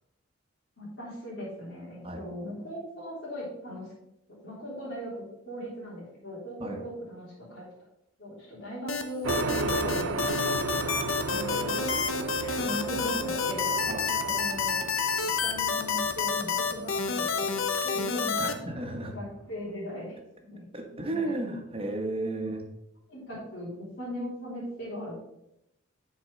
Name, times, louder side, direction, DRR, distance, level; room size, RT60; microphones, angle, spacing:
voice 1, 0.8-3.9 4.3-7.7 8.2-10.3 10.6-10.9 11.3-11.8 12.4-13.7 14.1-14.9 15.4-17.5 17.8-18.4 19.1-20.6 21.1-21.4 23.1-25.1, equal, 60° left, -9 dB, 3.5 m, -39 dB
sound 1, 8.9-18.5, left 5 dB, 80° left, 0.8 m, -29 dB
sound 2, 9.2-19.4, right 3 dB, 75° right, 0.6 m, -35 dB
voice 2, 18.4-19.2 20.7-22.7, right 2 dB, 30° right, 3 dB, 1.3 m, -33 dB
7.1 x 4.7 x 6.4 m, 0.83 s
head